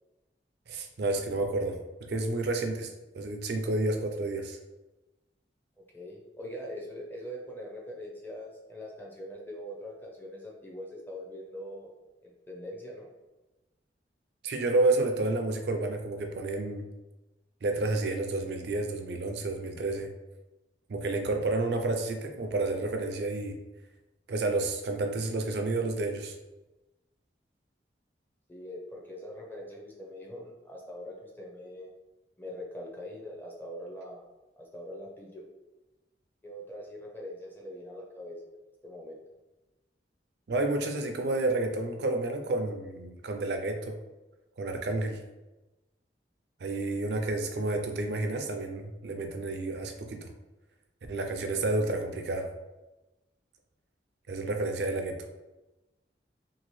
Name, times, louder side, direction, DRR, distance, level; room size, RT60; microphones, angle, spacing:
voice 1, 0.7-1.8 2.1-2.9 3.1-4.6 14.4-16.9 17.6-20.1 20.9-23.6 24.3-26.4 40.5-44.0 44.6-45.2 46.6-50.3 51.1-52.5 54.3-55.2, right 2 dB, 70° right, 5 dB, 0.4 m, -30 dB
voice 2, 5.9-11.9 12.2-13.1 28.5-31.9 32.4-34.2 34.6-35.4 36.4-38.4 38.8-39.2, equal, 10° left, -2 dB, 0.5 m, -42 dB
2.8 x 2.5 x 3.1 m, 1.1 s
head